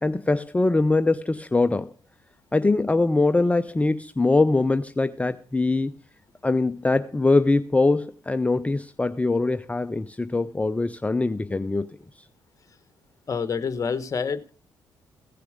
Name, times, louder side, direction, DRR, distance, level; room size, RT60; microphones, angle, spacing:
voice 1, 0.0-1.9 2.5-5.9 6.4-11.9, left 3 dB, 15° left, 0.6 m, -22 dB
voice 2, 13.3-14.5, left 5 dB, 40° left, 1.2 m, -27 dB
16.0 x 6.7 x 5.1 m
supercardioid pair, 70°, 9 cm